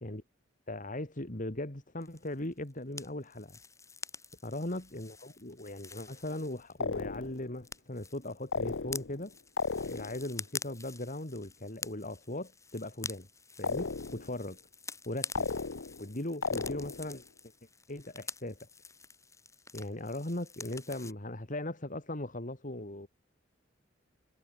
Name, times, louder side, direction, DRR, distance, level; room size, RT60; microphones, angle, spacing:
voice 1, 0.7-3.6 4.4-9.3 9.8-13.3 13.6-14.6 15.1-15.5 16.0-17.2 17.9-18.7 19.7-23.1, left 1 dB, 45° left, 2.7 m, -39 dB
sound 1, 2.0-7.0 7.2-21.1, left 4 dB, 15° left, 4.2 m, -47 dB
sound 2, 6.8-7.5 8.5-9.2 9.6-10.3 13.6-14.4 15.3-16.1 16.4-17.2, left 4 dB, 90° left, 0.9 m, -35 dB
head